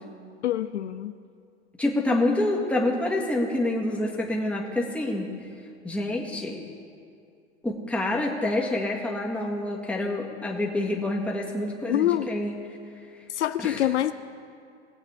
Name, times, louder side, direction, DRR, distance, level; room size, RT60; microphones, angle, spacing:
voice 1, 0.4-1.1 11.9-12.3 13.3-14.1, left 12 dB, 75° left, 11 dB, 0.5 m, -25 dB
voice 2, 1.8-5.3 5.8-6.6 7.6-12.5 13.6-13.9, left 1 dB, 5° left, -2 dB, 1.8 m, -27 dB
20.0 x 7.9 x 3.6 m, 2.4 s
hypercardioid pair, 105°, 35 cm